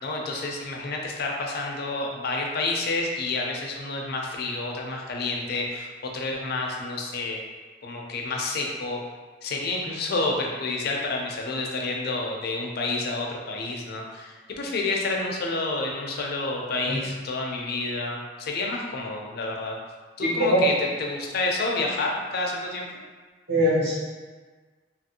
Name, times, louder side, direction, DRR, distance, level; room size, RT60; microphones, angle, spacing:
voice 1, 0.0-7.4 7.8-9.0 9.4-19.8 20.2-22.9, left 3 dB, 55° left, 0 dB, 0.4 m, -29 dB
voice 2, 20.2-20.6 23.5-23.9, equal, 55° right, -7 dB, 0.9 m, -22 dB
2.9 x 2.5 x 2.7 m, 1.4 s
head